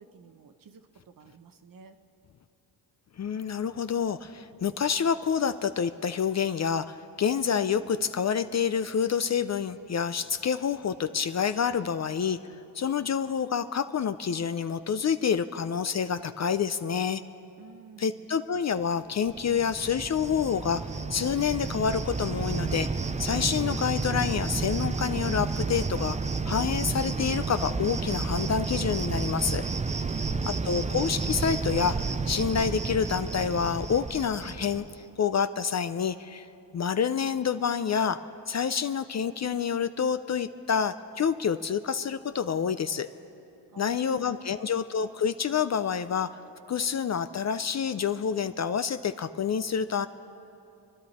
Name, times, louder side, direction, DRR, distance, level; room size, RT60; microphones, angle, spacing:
voice 1, 0.0-2.0 17.6-18.3 43.7-44.7, right 5 dB, 50° right, 8 dB, 1.0 m, -52 dB
voice 2, 3.2-12.4 12.7-17.2 18.0-22.9 23.2-26.2 26.5-29.6 30.5-34.8 35.2-36.5 36.7-43.1 43.8-46.4 46.7-50.1, left 7 dB, 40° left, 11 dB, 0.5 m, -28 dB
Cricket, 19.3-35.0, right 4 dB, 15° right, 0.5 m, -31 dB
28.5 x 11.0 x 4.3 m, 2.7 s
cardioid pair, 85°, 45 cm